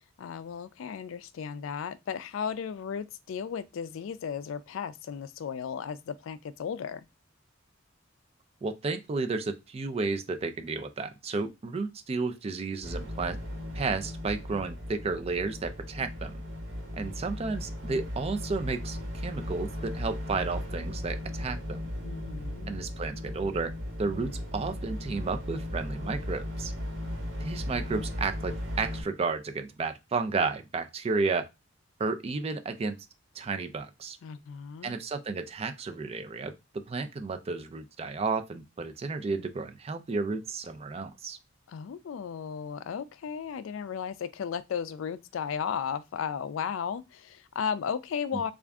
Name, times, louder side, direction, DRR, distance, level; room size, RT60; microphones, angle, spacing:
voice 1, 0.2-7.1 22.0-22.8 34.2-35.0 41.7-48.5, left 7 dB, 70° left, 0.3 m, -35 dB
voice 2, 8.6-13.4 13.7-16.4 16.9-21.8 22.7-23.7 24.0-26.7 27.4-31.5 32.0-33.0 33.3-34.2 34.8-41.4 48.3-48.5, right 4 dB, 30° right, 0.4 m, -32 dB
sound 1, 12.8-29.0, left 1 dB, 65° right, 1.2 m, -36 dB
3.4 x 2.4 x 3.5 m
head